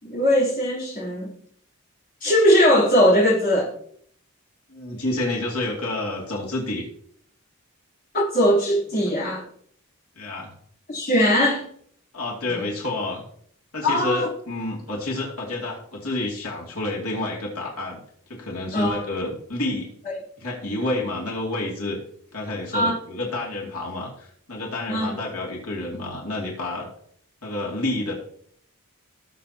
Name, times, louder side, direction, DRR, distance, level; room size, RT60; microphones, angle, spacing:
voice 1, 0.0-1.3 2.2-3.7 8.1-9.4 10.9-11.6 12.5-12.7 13.8-14.3 18.7-19.0 20.1-20.2 22.7-23.0 24.9-25.1, equal, 40° left, -5 dB, 3.7 m, -20 dB
voice 2, 4.7-6.9 10.2-10.6 12.1-13.2 13.7-18.0 18.3-19.9 20.4-22.0 22.3-26.9 27.4-28.1, left 2 dB, 85° left, -3 dB, 2.7 m, -29 dB
18.5 x 6.8 x 3.0 m, 0.63 s
head